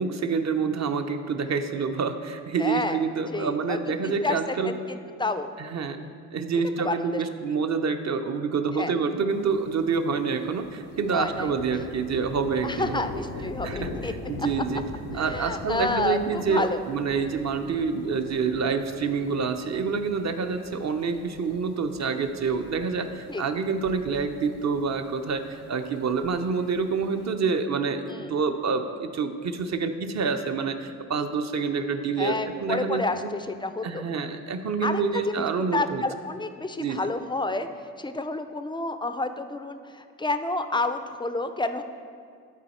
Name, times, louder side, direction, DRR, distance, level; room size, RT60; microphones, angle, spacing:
voice 1, 0.0-4.7 5.6-6.1 6.3-13.0 13.6-14.8 15.1-32.3 32.6-33.3 33.8-36.0 36.8-37.1, right 5 dB, 40° right, 8 dB, 0.7 m, -27 dB
voice 2, 2.6-3.0 3.3-5.5 6.8-7.2 8.8-8.9 11.1-11.5 12.6-14.1 14.4-14.5 15.1-16.8 23.3-23.4 28.0-28.3 32.2-34.0 34.8-37.7 38.0-41.8, left 2 dB, 10° left, 9 dB, 0.4 m, -30 dB
sound 1, 9.3-27.3, left 3 dB, 90° left, 0.8 m, -42 dB
11.0 x 4.1 x 4.3 m, 2.3 s
hypercardioid pair, 45°, 42 cm